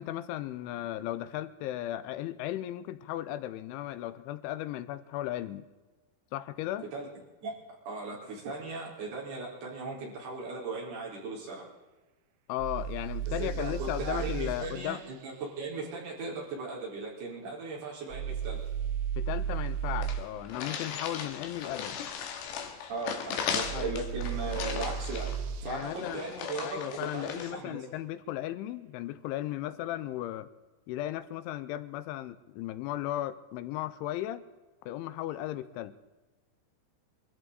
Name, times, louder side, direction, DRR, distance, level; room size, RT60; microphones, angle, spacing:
voice 1, 0.0-5.7 6.3-6.9 12.5-15.0 19.2-22.0 23.7-24.0 25.7-30.5 30.9-34.4 34.9-36.0, left 13 dB, 90° left, 13 dB, 3.1 m, -36 dB
voice 2, 7.9-11.6 13.4-18.6 22.9-25.3 25.6-27.8, right 3 dB, 55° right, -4 dB, 6.4 m, -37 dB
sound 1, 12.6-14.6 18.1-20.2 23.6-25.7, right 7 dB, 85° right, 3.2 m, -34 dB
sound 2, 19.3-19.4 19.6-19.7 20.0-27.5, left 7 dB, 70° left, 3.5 m, -37 dB
24.0 x 14.0 x 4.1 m, 1.2 s
omnidirectional pair, 5.4 m